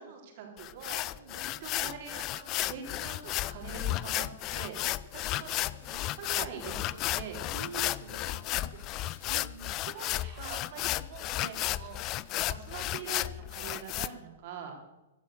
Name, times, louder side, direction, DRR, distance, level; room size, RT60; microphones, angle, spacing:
voice 1, 0.0-4.7 5.1-7.4 8.2-9.0 9.9-12.0 12.5-14.8, right 7 dB, 50° right, 2 dB, 3.8 m, -44 dB
sound 1, 0.6-14.1, left 16 dB, 35° left, 0.5 m, -33 dB
sound 2, 3.1-9.4, left 2 dB, 80° left, 5.9 m, -64 dB
sound 3, 5.1-9.0 9.3-9.5 9.9-10.7 11.6-11.8, right 3 dB, 15° right, 3.9 m, -61 dB
voice 2, 7.5-8.4 9.3-9.8, right 8 dB, 65° right, 16 dB, 1.0 m, -46 dB
15.5 x 11.5 x 6.7 m, 1.0 s
figure-of-eight pair, 105°, 0 cm